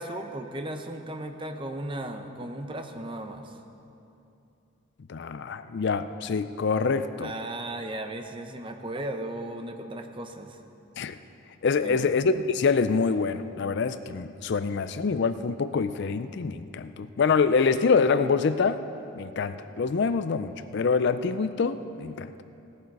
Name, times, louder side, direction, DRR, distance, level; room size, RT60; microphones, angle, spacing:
voice 1, 0.0-3.6 7.2-10.6 11.8-12.1, right 1 dB, 25° right, 6 dB, 0.7 m, -36 dB
voice 2, 5.1-7.3 11.0-11.2 11.6-18.8 19.2-22.3, left 5 dB, 50° left, 12 dB, 0.4 m, -25 dB
17.0 x 11.5 x 4.7 m, 2.8 s
head